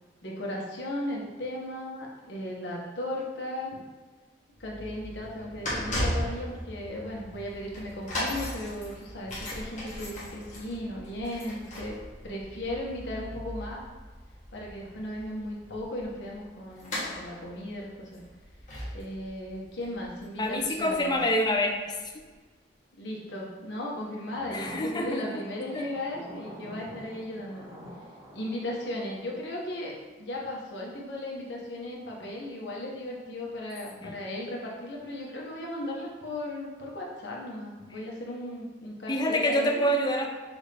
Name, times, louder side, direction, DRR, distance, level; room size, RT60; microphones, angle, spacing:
voice 1, 0.2-3.9 4.6-12.0 12.2-13.8 14.5-18.2 18.9-21.2 23.0-27.7 28.3-39.8, left 1 dB, 80° left, -3 dB, 1.0 m, -36 dB
sound 1, 4.6-21.5 22.2-22.3, equal, 45° left, 1.3 m, -37 dB
voice 2, 20.4-22.0 24.5-25.4 25.7-25.9 34.0-34.1 39.1-40.3, equal, 25° left, 2 dB, 0.5 m, -27 dB
sound 2, 24.3-29.7, equal, 20° right, 0.8 m, -47 dB
6.2 x 2.5 x 3.3 m, 1.3 s
head